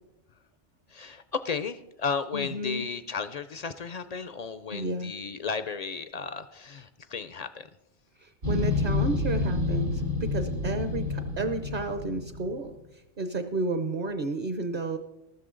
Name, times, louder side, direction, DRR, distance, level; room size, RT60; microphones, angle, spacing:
voice 1, 0.9-7.7, left 5 dB, 60° left, 12 dB, 0.4 m, -34 dB
voice 2, 2.3-2.8 4.7-5.1 8.2-12.7 13.2-15.0, right 2 dB, 50° right, 8 dB, 0.9 m, -31 dB
sound 1, 8.4-12.6, left 3 dB, 90° right, 3.0 m, -29 dB
14.0 x 13.0 x 3.8 m, 0.95 s
omnidirectional pair, 1.2 m